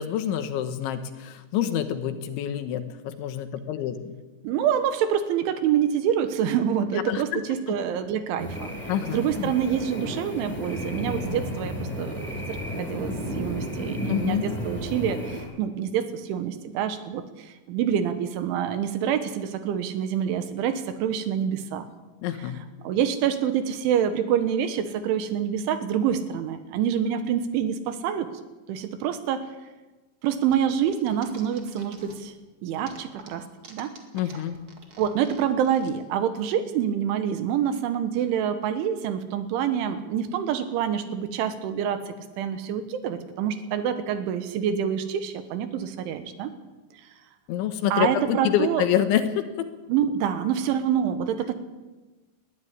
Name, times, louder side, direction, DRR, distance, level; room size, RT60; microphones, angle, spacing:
voice 1, 0.0-4.2 6.9-7.4 8.9-9.5 14.1-14.5 22.2-22.6 34.1-34.6 47.5-49.7, left 10 dB, 75° left, 9 dB, 3.4 m, -27 dB
voice 2, 4.4-8.7 9.1-21.9 22.8-28.3 28.7-29.5 30.2-32.3 32.6-33.9 35.0-46.5 47.9-48.9 49.9-51.5, right 9 dB, 75° right, 9 dB, 3.6 m, -26 dB
sound 1, 8.4-15.4, equal, ahead, 6.3 m, -33 dB
sound 2, 30.5-32.4 32.7-35.9, right 5 dB, 40° right, 2.0 m, -47 dB
20.5 x 13.0 x 9.8 m, 1.2 s
omnidirectional pair, 5.6 m